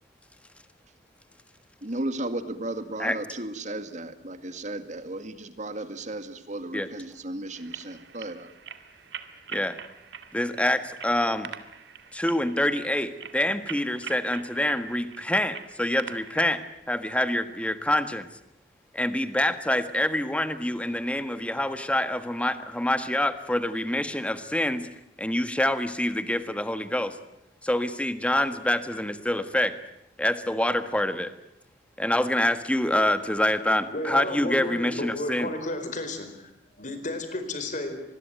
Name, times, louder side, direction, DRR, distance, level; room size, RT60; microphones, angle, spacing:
voice 1, 1.8-8.5, right 1 dB, 45° right, 10 dB, 2.1 m, -35 dB
sound 1, 7.5-16.7, right 7 dB, 75° right, 2.0 m, -44 dB
voice 2, 10.3-11.5 12.1-16.6 16.9-18.3 18.9-24.9 25.2-27.1 27.6-29.7 30.2-31.3 32.0-35.5, left 1 dB, 5° left, 10 dB, 1.6 m, -26 dB
voice 3, 33.9-38.0, left 2 dB, 45° left, 8 dB, 4.8 m, -33 dB
25.5 x 21.0 x 9.2 m, 0.83 s
head